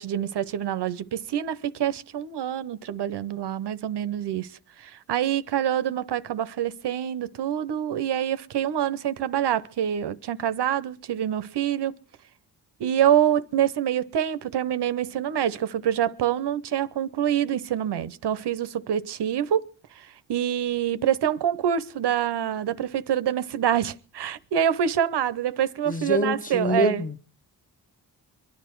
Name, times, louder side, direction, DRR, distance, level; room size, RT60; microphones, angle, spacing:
voice 1, 0.0-4.5 4.8-11.9 12.8-19.7 20.0-27.0, right 10 dB, 80° right, 0.8 m, -26 dB
voice 2, 25.9-27.2, left 1 dB, 20° left, 1.0 m, -25 dB
24.0 x 10.5 x 4.5 m
cardioid pair, 80°, 40 cm